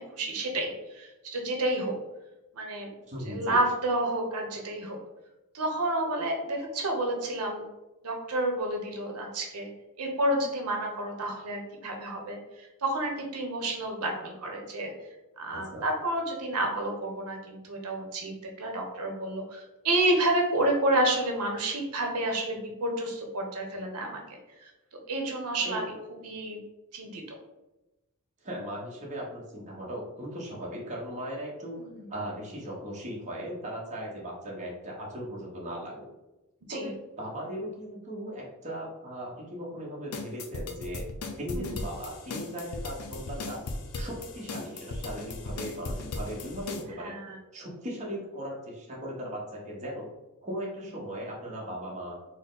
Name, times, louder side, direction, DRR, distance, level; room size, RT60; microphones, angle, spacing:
voice 1, 0.0-1.9 2.5-2.9 3.3-5.0 5.5-7.7 8.0-9.7 10.0-14.9 15.4-24.2 24.6-24.7 25.1-25.9 26.2-26.6 26.9-27.2 31.8-32.0 36.7-36.9 41.5-41.7 47.0-47.4, right 1 dB, 90° right, 2 dB, 0.7 m, -30 dB
voice 2, 3.1-3.6 15.5-15.9 25.6-25.8 28.4-31.8 32.1-36.1 36.7-41.1 41.4-43.6 44.0-47.1 47.5-50.1 50.4-52.1, equal, 30° right, -3 dB, 0.9 m, -38 dB
sound 1, 40.1-46.8, left 2 dB, 75° left, 0.5 m, -37 dB
4.3 x 2.0 x 3.8 m, 1.0 s
head